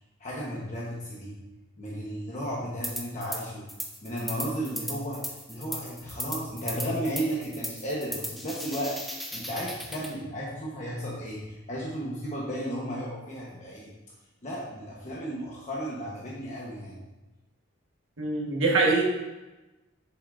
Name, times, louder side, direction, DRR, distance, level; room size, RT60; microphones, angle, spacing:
voice 1, 0.2-1.4 1.8-3.7 4.0-9.0 9.3-13.9 14.4-17.0, equal, 40° left, -5 dB, 1.2 m, -34 dB
sound 1, 2.8-3.4 3.7-10.1, equal, ahead, 0.7 m, -37 dB
voice 2, 18.2-19.0, right 3 dB, 75° right, -1 dB, 1.6 m, -23 dB
7.9 x 7.0 x 2.7 m, 1.1 s
head